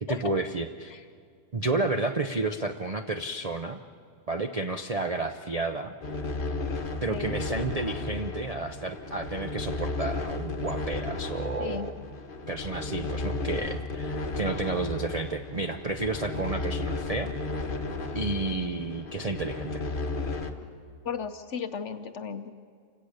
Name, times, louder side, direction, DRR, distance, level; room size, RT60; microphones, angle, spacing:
voice 1, 0.0-1.0 1.5-3.8 4.3-5.9 7.0-12.0 12.5-17.3 18.1-19.8, right 3 dB, 65° right, 6 dB, 0.3 m, -31 dB
sound 1, 6.0-20.5, left 3 dB, 35° left, 1.2 m, -34 dB
voice 2, 21.0-22.5, left 6 dB, 55° left, 9 dB, 0.9 m, -35 dB
28.0 x 17.0 x 6.5 m, 2.2 s
omnidirectional pair, 1.8 m